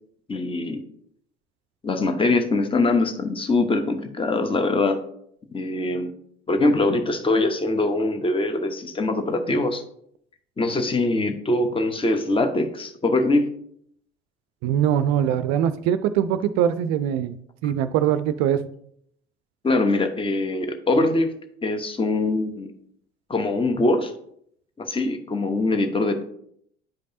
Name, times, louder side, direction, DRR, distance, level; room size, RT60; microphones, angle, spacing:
voice 1, 0.3-0.8 1.8-5.0 5.5-6.1 6.5-9.8 10.6-13.5 19.6-21.3 21.6-22.7 23.3-24.1 24.8-26.2, left 2 dB, 15° left, 7 dB, 0.9 m, -23 dB
voice 2, 14.6-17.4 17.6-18.6, right 10 dB, 55° right, 12 dB, 0.5 m, -22 dB
10.5 x 5.1 x 2.7 m, 0.69 s
figure-of-eight pair, 60°, 33 cm